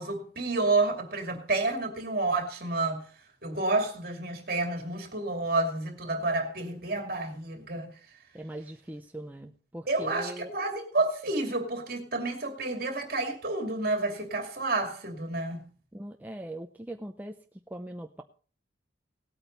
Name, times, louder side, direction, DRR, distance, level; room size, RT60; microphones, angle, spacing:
voice 1, 0.0-3.0 3.4-7.9 9.9-15.7, right 2 dB, 55° right, 2.5 m, -30 dB
voice 2, 8.3-10.5 15.9-17.4 17.7-18.2, right 1 dB, 10° right, 0.6 m, -40 dB
18.0 x 8.7 x 4.0 m
head